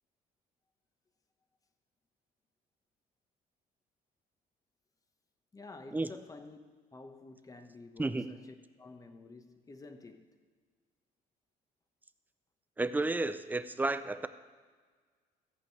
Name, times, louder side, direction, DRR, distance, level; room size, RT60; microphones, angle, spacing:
voice 1, 5.5-6.6 6.9-10.3, left 3 dB, 20° left, 1.0 m, -50 dB
voice 2, 12.8-14.3, right 2 dB, 10° right, 0.5 m, -32 dB
14.0 x 5.4 x 8.0 m
cardioid pair, 110°, 17 cm